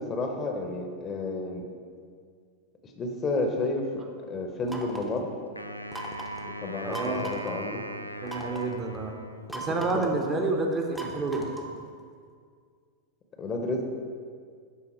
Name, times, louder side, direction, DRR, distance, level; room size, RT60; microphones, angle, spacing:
voice 1, 0.0-1.7 2.8-3.9 4.3-5.3 6.4-7.0 7.2-7.8 9.9-10.0 13.4-13.8, left 2 dB, 25° left, 3 dB, 0.8 m, -31 dB
sound 1, 4.7-5.2 5.9-6.4 6.9-7.5 8.3-8.7 9.5-10.2 11.0-11.8, right 2 dB, 5° right, 0.8 m, -38 dB
Wind instrument woodwind instrument, 5.6-9.8, equal, 90° right, 0.4 m, -40 dB
voice 2, 6.8-7.3 8.2-9.2 9.5-11.6, right 3 dB, 25° right, 2 dB, 0.9 m, -29 dB
11.5 x 4.1 x 4.3 m, 2.1 s
figure-of-eight pair, 90°, 0 cm